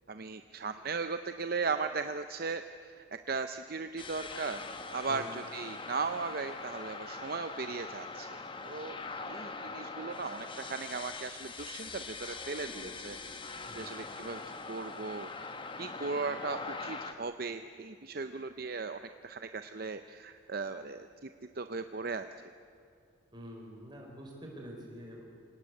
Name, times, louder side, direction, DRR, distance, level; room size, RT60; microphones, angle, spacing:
voice 1, 0.1-4.6 4.9-9.0 9.2-13.4 13.8-15.3 15.8-21.3 21.5-22.3, right 4 dB, 50° right, 9 dB, 0.6 m, -37 dB
sound 1, 4.0-17.1, left 3 dB, 25° left, 1.1 m, -42 dB
voice 2, 13.6-14.1 23.3-25.2, equal, 20° right, 0 dB, 5.1 m, -47 dB
26.5 x 18.0 x 8.5 m, 2.4 s
head